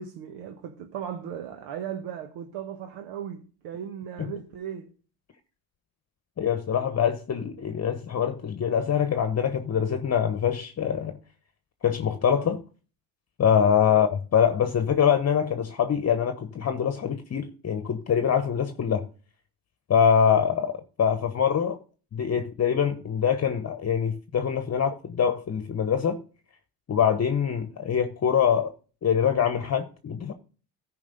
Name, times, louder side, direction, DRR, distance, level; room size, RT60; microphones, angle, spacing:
voice 1, 0.0-4.9 13.9-14.0, right 9 dB, 70° right, 1.3 m, -37 dB
voice 2, 6.4-11.2 11.8-12.6 13.4-19.0 19.9-21.8 22.1-26.2 26.9-28.7 29.0-30.3, left 8 dB, 35° left, 1.1 m, -24 dB
13.5 x 5.1 x 5.3 m
supercardioid pair, 75°, 44 cm